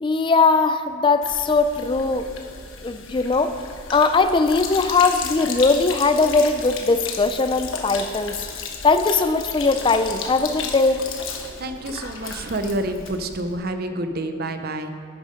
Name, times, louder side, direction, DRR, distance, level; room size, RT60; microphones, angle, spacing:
voice 1, 0.0-2.3 2.8-3.6 3.9-8.5 8.8-11.0, left 3 dB, 25° left, 10 dB, 0.4 m, -20 dB
Sink (filling or washing), 1.2-13.6, left 5 dB, 70° left, 1.2 m, -34 dB
voice 2, 11.6-14.9, right 1 dB, 45° right, 8 dB, 0.8 m, -28 dB
10.5 x 9.4 x 5.1 m, 2.2 s
head